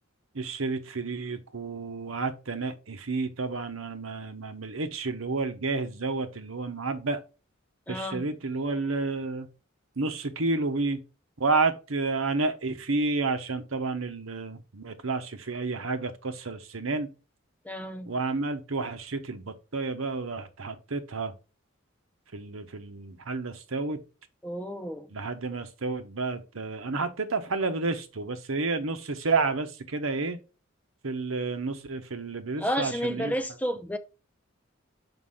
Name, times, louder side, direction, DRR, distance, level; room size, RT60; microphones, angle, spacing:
voice 1, 0.3-7.2 7.9-9.5 10.0-11.0 11.4-17.1 18.0-21.3 22.3-24.0 25.1-30.4 31.0-33.3, right 3 dB, 80° right, 1.0 m, -30 dB
voice 2, 7.9-8.3 17.7-18.1 24.4-25.1 32.6-34.0, equal, 5° left, 0.7 m, -31 dB
5.9 x 5.3 x 3.6 m
head